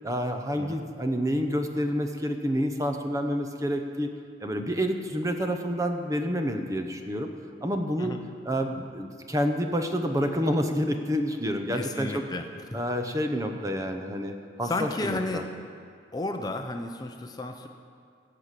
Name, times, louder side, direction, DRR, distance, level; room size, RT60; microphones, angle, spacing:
voice 1, 0.0-4.1 4.4-7.3 7.6-8.2 8.4-12.2 12.7-15.4, equal, 20° right, 5 dB, 0.8 m, -28 dB
voice 2, 11.7-12.5 12.7-12.8 14.6-15.4 16.1-17.7, left 2 dB, 20° left, 5 dB, 0.6 m, -32 dB
17.0 x 5.9 x 8.2 m, 2.4 s
head